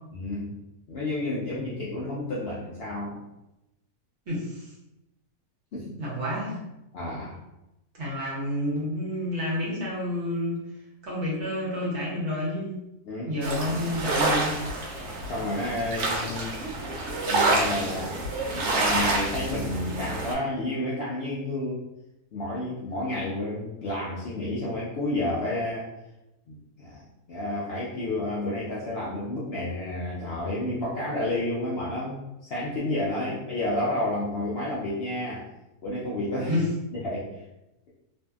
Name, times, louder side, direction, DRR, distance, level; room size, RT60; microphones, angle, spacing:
voice 1, 0.1-0.5 0.9-3.2 5.7-5.9 6.9-7.4 13.0-13.3 15.2-16.5 17.0-18.2 18.5-21.8 22.3-25.9 26.5-35.4 35.8-36.6 36.9-37.4, left 1 dB, 75° left, -6 dB, 0.5 m, -31 dB
voice 2, 4.3-4.7 6.0-6.6 7.9-10.6 11.0-12.8 13.2-14.5 36.4-36.7, left 1 dB, 55° right, -5 dB, 1.0 m, -29 dB
sound 1, 13.4-20.3, right 2 dB, 85° right, 1.2 m, -28 dB
2.6 x 2.5 x 2.3 m, 0.93 s
omnidirectional pair, 1.7 m